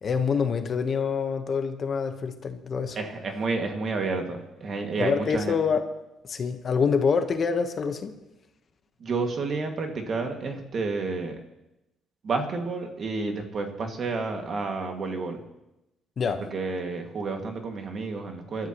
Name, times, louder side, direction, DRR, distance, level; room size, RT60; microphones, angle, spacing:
voice 1, 0.0-3.0 5.0-5.9 6.3-8.1 16.2-16.4, left 6 dB, 40° left, 6 dB, 1.1 m, -26 dB
voice 2, 3.0-5.6 9.0-11.4 12.2-15.4 16.5-18.7, right 3 dB, 40° right, 3 dB, 2.1 m, -30 dB
28.5 x 13.0 x 3.0 m, 0.93 s
cardioid pair, 135°, 0 cm